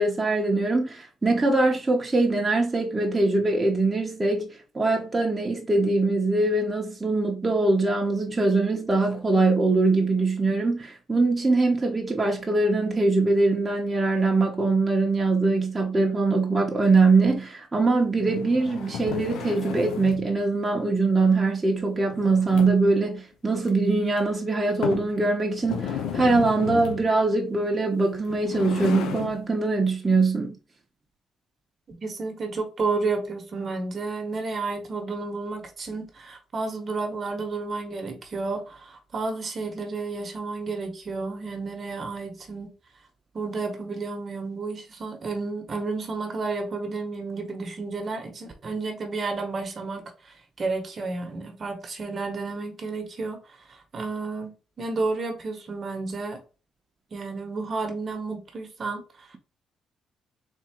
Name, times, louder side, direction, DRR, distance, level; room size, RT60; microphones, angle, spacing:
voice 1, 0.0-4.5 4.7-30.6, right 3 dB, 20° right, 0.9 m, -22 dB
sound 1, 18.2-20.3 22.1-23.0 23.6-23.7 24.2-24.3 24.8-25.1 25.6-27.1 28.1-29.4, left 8 dB, 90° left, 0.8 m, -33 dB
voice 2, 31.9-42.7 43.3-53.4 53.7-56.4 57.1-59.3, right 3 dB, 45° right, 1.1 m, -31 dB
3.7 x 2.8 x 4.4 m
cardioid pair, 90°, 0 cm